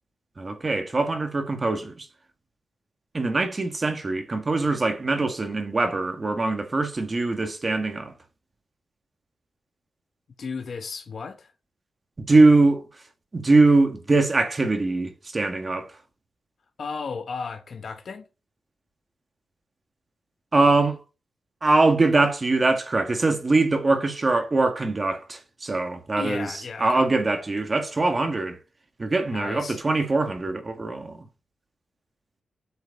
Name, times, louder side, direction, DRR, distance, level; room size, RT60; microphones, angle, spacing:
voice 1, 0.4-2.1 3.1-8.1 12.2-12.8 13.3-15.9 20.5-21.0 21.6-28.6 29.0-31.2, right 3 dB, 25° right, 1.5 m, -22 dB
voice 2, 10.4-11.5 16.8-18.2 26.2-27.1 29.3-29.8, left 5 dB, 50° left, 0.9 m, -34 dB
8.3 x 4.7 x 6.8 m
wide cardioid pair, 160°, 0 cm